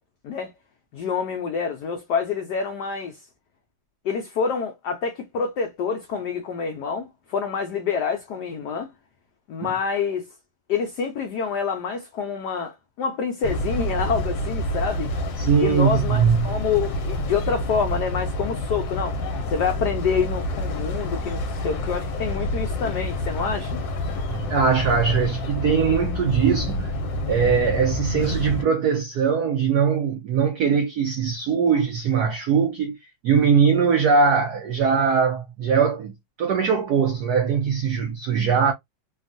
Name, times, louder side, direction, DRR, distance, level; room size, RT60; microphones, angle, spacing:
voice 1, 0.9-3.2 4.0-8.9 9.5-10.3 10.7-15.1 15.6-19.2 19.5-23.8, left 6 dB, 85° left, 0.9 m, -27 dB
sound 1, 13.4-28.6, left 1 dB, 70° left, 1.3 m, -28 dB
voice 2, 15.4-16.5 24.3-26.9 27.3-33.0 33.2-36.1 36.4-38.7, right 6 dB, 85° right, 0.8 m, -21 dB
3.4 x 2.3 x 2.5 m
omnidirectional pair, 2.4 m